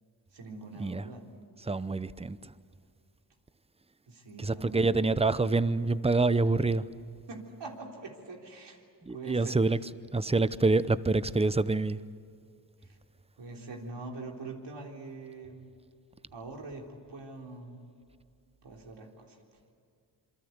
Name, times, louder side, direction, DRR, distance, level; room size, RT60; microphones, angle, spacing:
voice 1, 0.3-1.3 4.1-4.9 7.3-8.8 9.1-9.6 12.8-13.0 13.4-15.7 16.3-17.8 18.6-19.4, right 3 dB, 70° right, 3.7 m, -43 dB
voice 2, 1.7-2.4 4.4-6.8 9.1-9.8 10.1-12.0, right 3 dB, 15° right, 0.7 m, -26 dB
27.0 x 23.5 x 8.1 m
cardioid pair, 70°, 43 cm